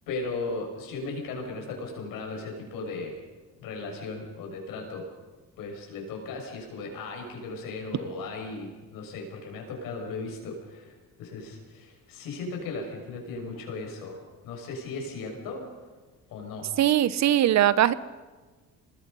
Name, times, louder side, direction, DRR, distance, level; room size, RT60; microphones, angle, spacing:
voice 1, 0.1-3.2 3.6-5.1 5.6-10.9 11.2-14.2 14.4-15.7 16.3-16.7, left 3 dB, 85° left, 1 dB, 6.6 m, -36 dB
voice 2, 16.8-17.9, right 11 dB, 55° right, 17 dB, 0.9 m, -20 dB
27.5 x 20.0 x 5.5 m, 1.3 s
cardioid pair, 100°, 33 cm